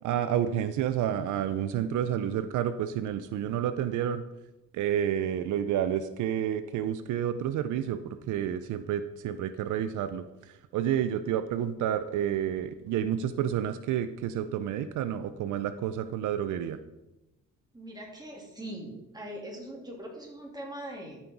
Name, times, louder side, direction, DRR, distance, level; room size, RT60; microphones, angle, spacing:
voice 1, 0.0-4.2 4.7-10.2 10.7-16.8, right 10 dB, 80° right, 12 dB, 0.6 m, -30 dB
voice 2, 17.7-21.2, right 1 dB, 15° right, -1 dB, 3.0 m, -41 dB
13.0 x 5.6 x 4.5 m, 0.98 s
cardioid pair, 90°, 30 cm